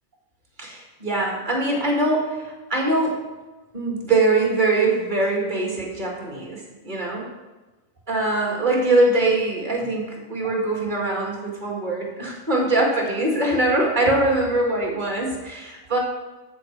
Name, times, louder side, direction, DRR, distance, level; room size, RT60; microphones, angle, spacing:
voice 1, 0.6-3.2 3.7-7.3 8.1-16.0, right 2 dB, 35° right, -1 dB, 2.4 m, -22 dB
14.0 x 6.5 x 4.7 m, 1.2 s
omnidirectional pair, 1.5 m